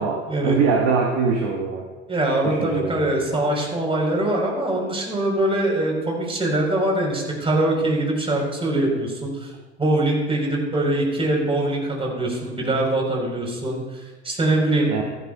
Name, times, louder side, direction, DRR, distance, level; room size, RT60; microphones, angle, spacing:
voice 1, 0.0-1.9 2.4-3.2 14.9-15.0, right 5 dB, 45° right, 1 dB, 1.5 m, -23 dB
voice 2, 2.1-9.5 9.8-15.0, right 1 dB, 15° right, 0 dB, 4.1 m, -23 dB
16.5 x 13.5 x 2.3 m, 1.3 s
figure-of-eight pair, 75°, 36 cm